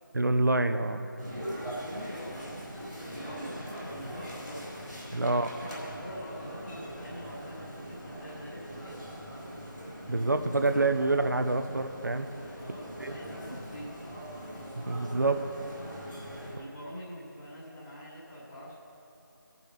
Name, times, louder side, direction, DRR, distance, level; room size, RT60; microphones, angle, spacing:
voice 1, 0.1-1.1 5.1-5.5 10.1-12.3 13.0-13.2 14.9-15.4, right 2 dB, 60° right, 8 dB, 0.7 m, -27 dB
sound 1, 1.2-16.5, equal, 5° left, 1.4 m, -41 dB
voice 2, 2.0-4.7 5.2-9.1 12.6-13.9 16.4-18.7, equal, 20° left, -11 dB, 1.7 m, -45 dB
18.0 x 6.9 x 5.8 m, 2.8 s
figure-of-eight pair, 175°, 11 cm